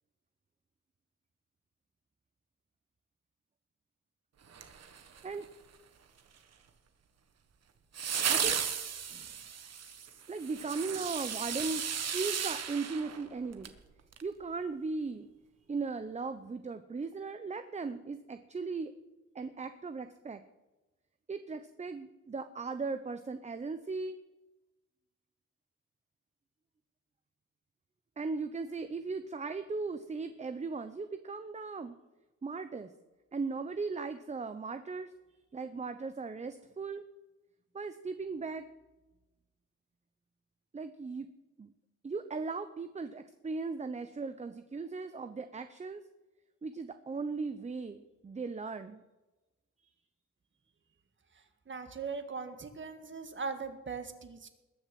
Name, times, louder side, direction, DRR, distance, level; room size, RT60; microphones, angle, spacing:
sound 1, 4.5-5.4 7.9-13.8 14.1-14.2, right 7 dB, 55° right, 1.4 m, -35 dB
voice 1, 8.3-8.6 9.1-9.3 10.3-13.7 14.2-15.3 15.7-18.9 19.3-20.4 21.3-24.2 28.2-31.9 32.4-32.9 33.3-35.1 35.5-37.0 37.7-38.7 40.7-41.3 41.6-41.7 42.0-46.0 46.6-49.0, right 4 dB, 25° right, 10 dB, 0.7 m, -37 dB
voice 2, 51.7-54.5, right 5 dB, 40° right, 8 dB, 1.7 m, -40 dB
20.5 x 6.8 x 7.6 m, 1.1 s
cardioid pair, 105°, 30 cm